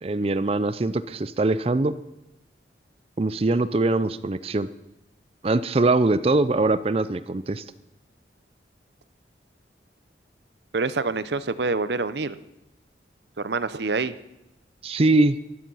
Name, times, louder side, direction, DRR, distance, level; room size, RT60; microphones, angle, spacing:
voice 1, 0.0-2.0 3.2-4.7 5.4-7.6 14.8-15.4, right 2 dB, 35° right, 15 dB, 0.5 m, -22 dB
voice 2, 10.7-12.4 13.4-14.1, right 4 dB, 70° right, 14 dB, 0.7 m, -26 dB
16.0 x 12.0 x 5.6 m, 0.90 s
head